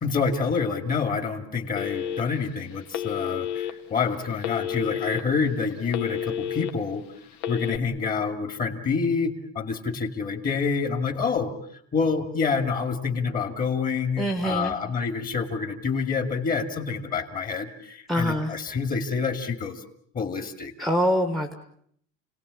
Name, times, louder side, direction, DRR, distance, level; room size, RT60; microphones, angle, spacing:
voice 1, 0.0-7.0 7.5-11.5 11.9-19.8 20.1-20.7, left 5 dB, 25° left, 7 dB, 2.5 m, -27 dB
Telephone, 1.8-2.5 2.9-3.7 4.4-5.2 5.6-6.7 7.3-7.8, left 9 dB, 65° left, 2.1 m, -30 dB
voice 2, 14.2-14.7 18.1-18.5 20.8-21.5, equal, ahead, 8 dB, 1.4 m, -24 dB
30.0 x 18.5 x 8.4 m, 0.65 s
cardioid pair, 180°, 31 cm